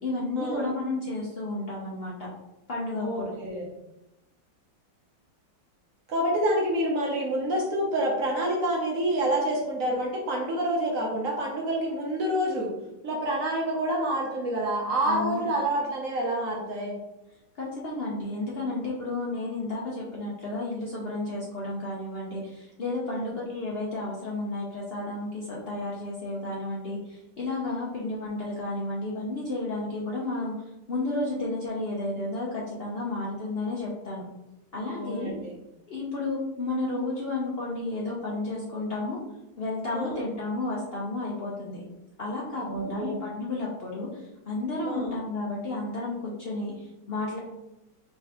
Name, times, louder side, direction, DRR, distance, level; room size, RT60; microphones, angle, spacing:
voice 1, 0.0-2.1 2.7-3.3 15.0-15.4 17.6-30.5 30.9-34.2 34.7-35.3 35.9-39.2 39.6-41.8 42.2-47.4, left 2 dB, 75° left, -5 dB, 0.5 m, -32 dB
voice 2, 2.9-3.7 6.1-12.7 13.0-17.0 23.0-23.3 34.8-35.5 37.2-37.4 39.9-40.2 42.6-43.2 44.8-45.1, right 1 dB, 60° right, -1 dB, 0.9 m, -28 dB
4.5 x 3.3 x 2.9 m, 0.93 s
omnidirectional pair, 2.1 m